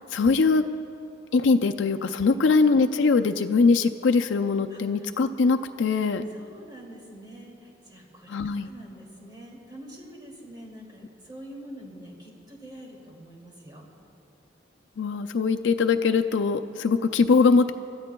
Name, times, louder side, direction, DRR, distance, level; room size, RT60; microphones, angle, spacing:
voice 1, 0.1-0.6 1.3-6.3 8.3-8.7 15.0-17.7, left 4 dB, 90° left, 6 dB, 0.5 m, -22 dB
voice 2, 6.3-8.3 8.6-13.9, equal, 25° right, -3 dB, 2.5 m, -45 dB
29.5 x 14.0 x 2.3 m, 2.6 s
head